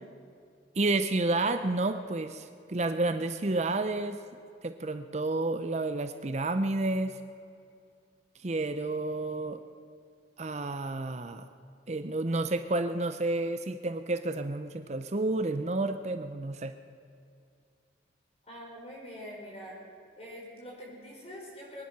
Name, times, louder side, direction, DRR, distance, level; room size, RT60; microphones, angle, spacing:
voice 1, 0.7-4.2 4.6-7.1 8.4-9.6 10.4-11.4 11.9-16.7, right 2 dB, 40° right, 9 dB, 0.6 m, -30 dB
voice 2, 18.5-19.8 20.2-21.8, equal, 35° left, -3 dB, 4.9 m, -44 dB
23.0 x 10.5 x 6.0 m, 2.4 s
head